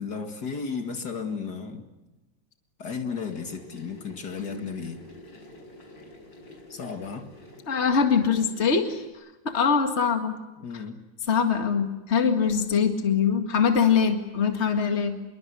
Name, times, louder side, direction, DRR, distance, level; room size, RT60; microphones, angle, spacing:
voice 1, 0.0-1.9 2.8-5.0 6.7-7.3 10.6-11.0, left 5 dB, 60° left, 6 dB, 2.6 m, -34 dB
sound 1, 3.2-9.1, left 1 dB, 75° left, 6.3 m, -48 dB
voice 2, 7.7-10.3 10.7-10.8 11.3-15.2, left 6 dB, 35° left, 6 dB, 2.2 m, -23 dB
26.5 x 23.0 x 8.3 m, 1.0 s
omnidirectional pair, 2.0 m